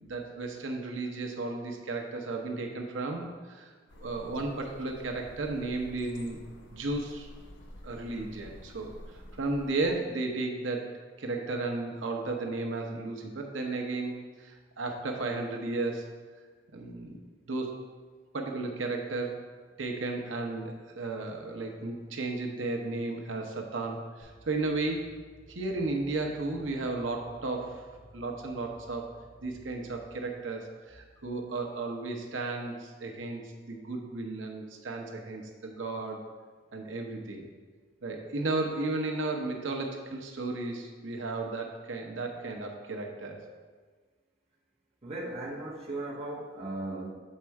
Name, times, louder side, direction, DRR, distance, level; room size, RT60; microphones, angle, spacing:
voice 1, 0.0-3.7 4.0-7.3 7.8-16.1 16.7-17.2 17.5-17.7 18.3-19.4 19.8-25.1 25.5-27.9 28.1-29.0 29.4-36.2 36.7-37.5 38.0-43.4, right 3 dB, 80° right, 2 dB, 0.8 m, -34 dB
sound 1, 3.9-9.9, left 1 dB, 70° left, 0.7 m, -50 dB
sound 2, 24.2-30.8, right 1 dB, 30° left, 2.0 m, -56 dB
voice 2, 45.0-47.1, right 2 dB, 35° right, -5 dB, 1.2 m, -37 dB
7.4 x 4.3 x 4.7 m, 1.5 s
head